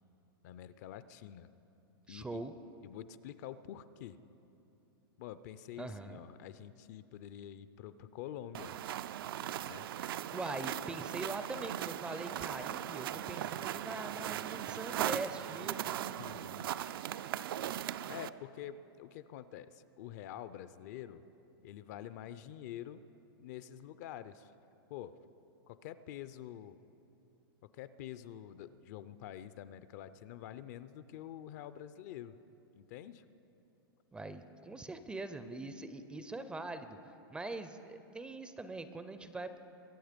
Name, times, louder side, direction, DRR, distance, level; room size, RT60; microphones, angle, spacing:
voice 1, 0.4-1.5 2.1-2.4 2.8-4.2 5.2-8.8 9.6-9.9 16.2-16.7 18.1-21.2 21.6-23.0 23.4-24.5 24.9-25.2 25.7-26.8 27.7-32.4 32.8-33.2, left 11 dB, 45° left, 14 dB, 0.5 m, -47 dB
voice 2, 2.1-2.5 5.8-6.2 10.3-16.1 34.1-39.6, right 2 dB, 10° right, 10 dB, 0.4 m, -42 dB
sound 1, 8.5-18.3, right 11 dB, 65° right, 0.4 m, -39 dB
22.5 x 8.8 x 5.1 m, 2.8 s
hypercardioid pair, 140°, 13 cm